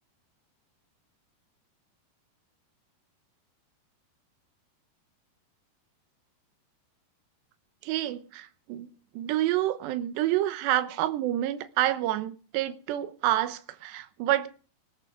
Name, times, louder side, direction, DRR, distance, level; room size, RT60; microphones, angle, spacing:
voice 1, 7.8-14.5, right 14 dB, 75° right, 2.9 m, -28 dB
19.5 x 10.5 x 4.8 m
omnidirectional pair, 5.4 m